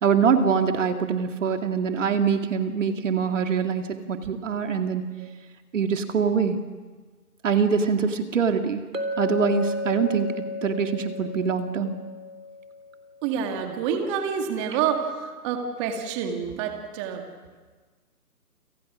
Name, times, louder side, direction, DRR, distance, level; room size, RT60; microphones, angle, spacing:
voice 1, 0.0-5.1 5.7-6.6 7.4-8.8 9.2-12.0, right 6 dB, 50° right, 6 dB, 2.3 m, -24 dB
Chink clink, 8.9-13.1, left 2 dB, 90° right, 3.7 m, -33 dB
voice 2, 13.2-17.3, right 7 dB, 20° right, 4 dB, 2.1 m, -28 dB
29.5 x 27.0 x 6.3 m, 1.4 s
hypercardioid pair, 155°, 47 cm